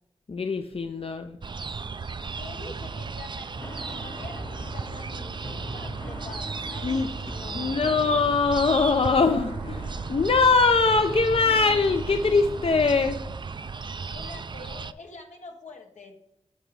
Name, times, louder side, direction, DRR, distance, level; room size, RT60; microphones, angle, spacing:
voice 1, 0.3-1.4 6.8-7.1 7.5-13.2, left 4 dB, 50° left, 7 dB, 0.5 m, -22 dB
sound 1, 1.4-14.9, right 4 dB, 40° right, 0.4 m, -35 dB
voice 2, 2.4-5.3 5.7-7.8 14.1-16.2, left 3 dB, 80° left, 2 dB, 1.4 m, -45 dB
sound 2, 3.5-13.1, left 1 dB, 30° left, 1.2 m, -41 dB
13.5 x 5.0 x 3.3 m, 0.81 s
cardioid pair, 50°, 12 cm